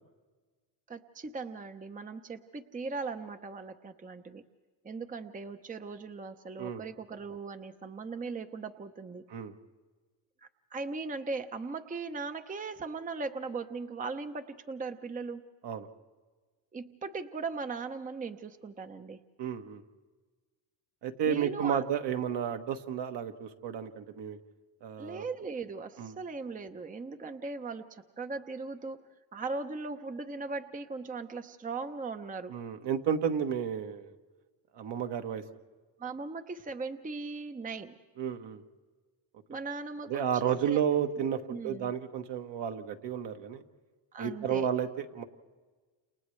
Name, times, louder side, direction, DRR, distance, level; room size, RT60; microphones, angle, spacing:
voice 1, 0.9-4.4 4.8-9.2 10.4-15.4 16.7-19.2 21.3-21.8 25.0-32.5 36.0-38.0 39.5-40.4 40.7-40.8 41.5-41.9 44.1-44.7, right 4 dB, 15° right, 8 dB, 0.8 m, -39 dB
voice 2, 19.4-19.8 21.0-24.4 24.8-25.3 26.0-26.1 32.5-34.1 34.7-35.4 38.2-38.6 40.1-43.6 44.2-45.2, right 8 dB, 60° right, 5 dB, 1.5 m, -32 dB
29.5 x 28.0 x 3.3 m, 1.4 s
supercardioid pair, 90°, 48 cm